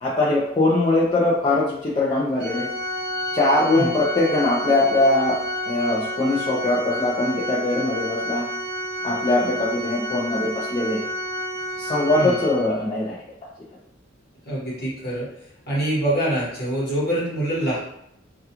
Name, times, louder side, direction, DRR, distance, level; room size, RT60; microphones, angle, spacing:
voice 1, 0.0-2.7 3.3-5.4 5.7-8.5 9.0-11.1 11.8-13.2, left 2 dB, 25° left, -7 dB, 0.4 m, -21 dB
Organ, 2.4-13.0, left 1 dB, 55° right, 0.5 m, -30 dB
voice 2, 14.5-15.3 15.7-17.8, right 1 dB, 55° left, -7 dB, 1.1 m, -24 dB
2.4 x 2.2 x 2.8 m, 0.76 s
head